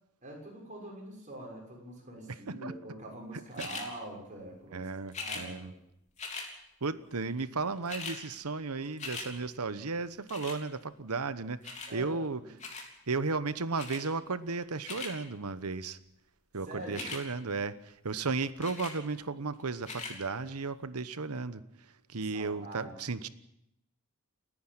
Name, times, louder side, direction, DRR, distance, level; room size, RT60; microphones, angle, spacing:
voice 1, 0.2-4.9 5.2-5.8 11.9-12.5 16.6-17.1 22.1-23.2, right 1 dB, 35° right, 0 dB, 6.6 m, -45 dB
voice 2, 2.3-2.7 3.6-3.7 4.7-5.7 6.8-12.4 13.1-16.0 16.5-23.3, right 4 dB, 85° right, 14 dB, 1.1 m, -35 dB
sound 1, 3.6-3.9 5.1-5.5 6.2-6.5 7.4-7.5 7.7-8.2 8.6-9.3 10.3-10.6 11.6-11.9 12.6-12.9 13.8-14.0 14.6-15.1 16.8-17.2 18.6-19.0 19.8-20.2 20.8-20.9, left 4 dB, 30° left, 3.4 m, -40 dB
30.0 x 10.0 x 8.9 m, 0.82 s
head